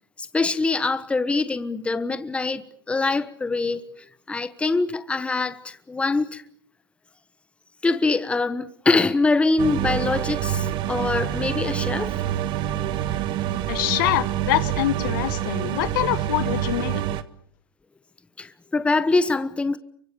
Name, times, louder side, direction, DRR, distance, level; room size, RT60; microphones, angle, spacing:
voice 1, 0.2-6.4 7.8-12.4 18.4-19.8, left 3 dB, 10° left, 1.2 m, -24 dB
sound 1, 9.6-17.2, right 11 dB, 40° right, 1.5 m, -27 dB
voice 2, 13.7-17.0, left 16 dB, 60° left, 1.4 m, -25 dB
29.0 x 24.5 x 7.0 m
hypercardioid pair, 120°, 12 cm